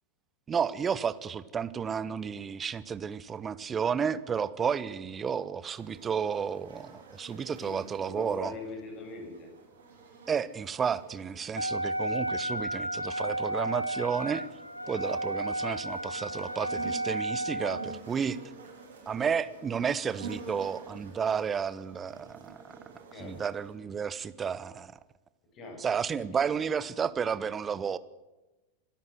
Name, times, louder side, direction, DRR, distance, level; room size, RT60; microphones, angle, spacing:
voice 1, 0.5-8.5 10.3-14.5 14.9-18.4 19.1-22.7 23.2-24.9 25.8-28.0, right 7 dB, 20° right, 16 dB, 1.1 m, -32 dB
sound 1, 5.7-23.7, right 4 dB, 65° right, 8.0 m, -49 dB
voice 2, 7.5-9.5 23.1-23.4 25.5-25.9 26.5-26.6, left 3 dB, 35° left, 3 dB, 7.6 m, -42 dB
Wind instrument woodwind instrument, 11.6-18.0, right 1 dB, 90° left, 0.6 m, -33 dB
25.5 x 13.5 x 7.7 m, 1.1 s
figure-of-eight pair, 90°, 0 cm